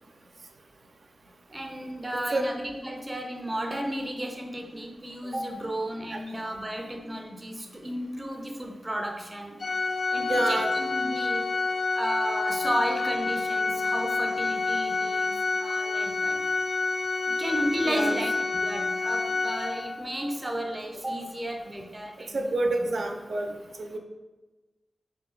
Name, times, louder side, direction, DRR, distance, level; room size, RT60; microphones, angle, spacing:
voice 1, 1.5-9.6 10.1-11.5 12.0-16.4 17.3-18.3 18.6-22.6, right 1 dB, 20° right, 3 dB, 0.5 m, -33 dB
voice 2, 2.1-2.4 6.1-6.2 10.3-10.7 17.9-18.2 22.3-23.5 23.8-24.0, right 2 dB, 70° right, 3 dB, 0.4 m, -28 dB
Organ, 9.6-20.2, left 3 dB, 55° left, 0.3 m, -28 dB
3.7 x 2.7 x 3.8 m, 1.2 s
wide cardioid pair, 110°, 0 cm